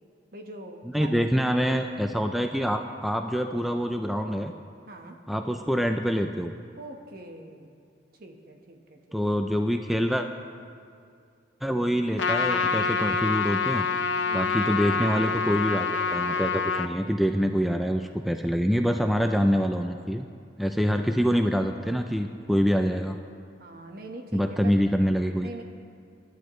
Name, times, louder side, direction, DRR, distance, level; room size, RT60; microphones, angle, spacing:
voice 1, 0.3-1.5 4.9-5.2 6.7-7.8 8.2-9.2 14.3-14.8 16.7-17.2 23.6-24.9 25.4-25.6, right 1 dB, 55° right, 3 dB, 1.3 m, -43 dB
voice 2, 0.9-4.5 5.3-6.5 9.1-10.3 11.6-13.8 14.3-20.3 20.6-23.2 24.3-25.5, equal, ahead, 5 dB, 0.4 m, -25 dB
Trumpet, 12.2-16.9, left 4 dB, 75° left, 0.6 m, -26 dB
24.5 x 11.5 x 3.2 m, 2.3 s
head